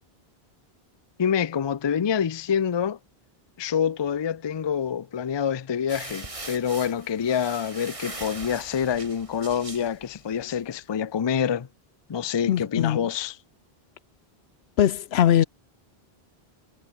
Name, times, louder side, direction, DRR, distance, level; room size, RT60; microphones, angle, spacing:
voice 1, 1.2-3.0 3.6-11.7 12.1-13.3, left 8 dB, 35° left, 0.4 m, -26 dB
sound 1, 5.9-10.6, right 2 dB, 30° right, 2.2 m, -41 dB
voice 2, 12.5-13.1 14.8-15.4, left 10 dB, 80° left, 1.0 m, -21 dB
omnidirectional pair, 1.0 m